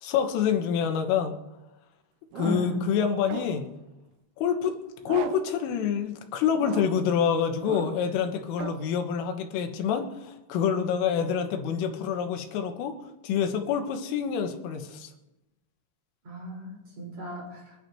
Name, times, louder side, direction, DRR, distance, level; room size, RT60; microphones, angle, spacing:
voice 1, 0.0-1.3 2.4-3.6 4.4-4.8 5.1-13.0 13.2-15.1, left 7 dB, 80° left, 5 dB, 3.9 m, -27 dB
sound 1, 2.3-2.9 3.3-3.8 5.0-5.6 6.6-7.1 7.6-8.1 8.6-8.9, right 10 dB, 80° right, 3.1 m, -37 dB
voice 2, 2.4-2.9 16.2-17.8, left 1 dB, 35° right, -3 dB, 5.9 m, -34 dB
28.5 x 11.0 x 3.1 m, 0.95 s
omnidirectional pair, 5.9 m